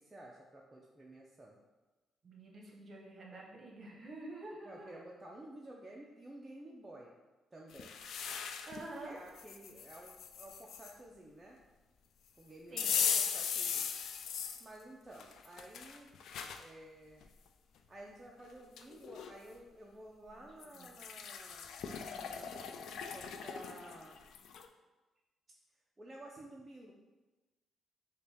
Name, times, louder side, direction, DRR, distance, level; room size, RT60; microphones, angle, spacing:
voice 1, 0.0-1.6 4.6-7.1 7.5-8.0 9.0-11.6 12.4-13.9 14.6-16.1 16.6-17.3 17.9-22.6 23.1-24.2 26.0-26.9, right 1 dB, 15° right, -3 dB, 0.4 m, -53 dB
voice 2, 2.2-5.0 8.0-8.1 8.6-9.2 12.7-13.0 20.8-20.9 22.4-22.6, right 2 dB, 35° right, -2 dB, 0.9 m, -48 dB
sound 1, 7.7-8.8 9.4-10.9 12.8-14.6 15.2-16.6 17.2-17.3 18.4-18.5 18.8-19.3 20.6-24.7, left 7 dB, 70° left, 0.3 m, -38 dB
6.6 x 2.2 x 3.4 m, 1.2 s
cardioid pair, 160°, 0 cm